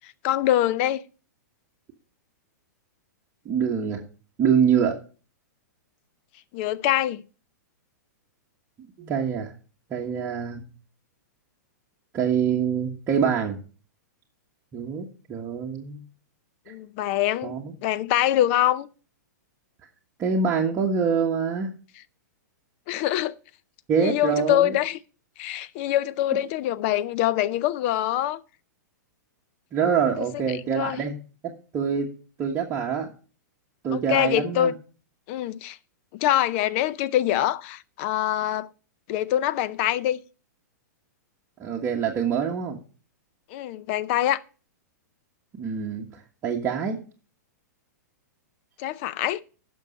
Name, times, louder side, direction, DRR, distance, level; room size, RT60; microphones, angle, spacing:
voice 1, 0.2-1.0 6.5-7.2 16.7-17.5 17.8-18.9 22.9-23.4 24.0-25.0 25.4-28.4 30.3-30.4 30.7-31.0 33.9-34.8 35.3-35.8 36.1-38.7 39.1-40.2 43.5-44.4 48.8-49.4, left 13 dB, 45° left, 0.6 m, -24 dB
voice 2, 3.4-4.0 4.4-4.9 9.0-9.5 9.9-10.6 12.1-13.6 14.7-16.0 17.4-17.7 20.2-21.7 23.9-24.8 29.7-32.1 32.4-33.1 33.8-34.7 41.6-42.8 45.6-47.0, right 7 dB, 25° right, 1.5 m, -25 dB
11.0 x 6.3 x 5.4 m
hypercardioid pair, 140°, 10 cm